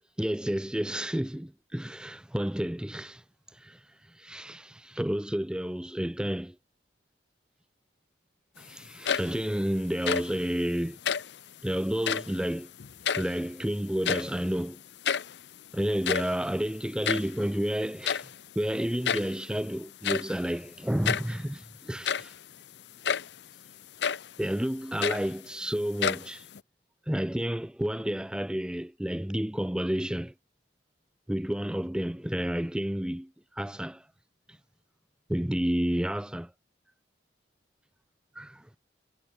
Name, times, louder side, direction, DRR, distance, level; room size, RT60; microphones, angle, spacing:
voice 1, 0.2-3.2 3.5-6.6 8.6-11.0 11.6-12.7 13.2-14.8 15.7-18.3 18.6-22.3 24.4-26.5 27.1-30.3 31.3-34.1 35.3-36.5 38.4-38.7, equal, 5° right, 0.4 m, -30 dB
sound 1, 8.9-9.5 9.9-10.4 11.0-11.4 11.9-12.4 12.8-13.6 13.9-14.5 14.8-14.9 15.0-15.4 15.9-17.4 18.0-18.4 19.0-19.4 20.0-20.4 21.0-21.4 21.9-22.4 23.0-23.4 24.0-24.3 24.8-25.6 26.0-26.6, left 7 dB, 65° left, 0.6 m, -30 dB
head